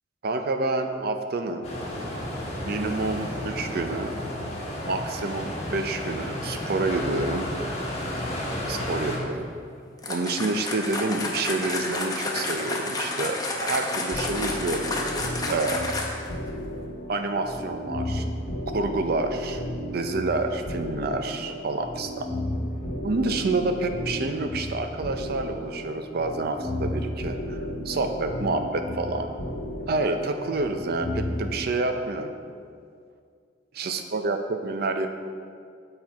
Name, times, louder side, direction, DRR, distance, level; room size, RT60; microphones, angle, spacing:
voice 1, 0.2-1.7 2.6-4.1 4.8-7.5 8.7-9.5 10.1-14.9 15.5-16.0 17.1-18.2 18.7-19.6 19.9-22.3 23.0-27.6 27.9-29.3 29.9-32.3 33.7-35.1, right 3 dB, 60° right, 7 dB, 0.5 m, -28 dB
sound 1, 1.6-9.2, left 1 dB, 35° left, 1.2 m, -32 dB
sound 2, 10.0-16.3, left 2 dB, 20° left, 0.7 m, -30 dB
sound 3, 14.1-31.6, left 1 dB, 60° left, 1.2 m, -34 dB
7.5 x 4.4 x 4.6 m, 2.2 s
head